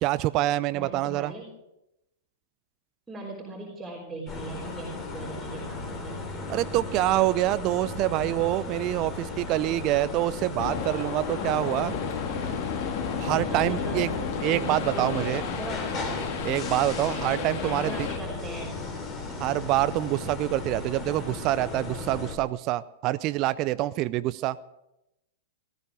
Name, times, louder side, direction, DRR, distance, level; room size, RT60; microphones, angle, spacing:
voice 1, 0.0-1.3 6.5-12.0 13.2-14.1 14.4-15.4 16.4-18.1 19.4-24.6, right 16 dB, 40° right, 17 dB, 0.4 m, -26 dB
voice 2, 0.7-1.5 3.1-6.2 13.3-16.4 17.4-18.8, right 2 dB, 5° right, -4 dB, 4.0 m, -39 dB
sound 1, 4.3-22.4, left 3 dB, 25° left, 3.2 m, -36 dB
sound 2, 10.6-18.2, left 6 dB, 45° left, 1.8 m, -33 dB
18.5 x 14.0 x 5.0 m, 0.88 s
figure-of-eight pair, 100°, 0 cm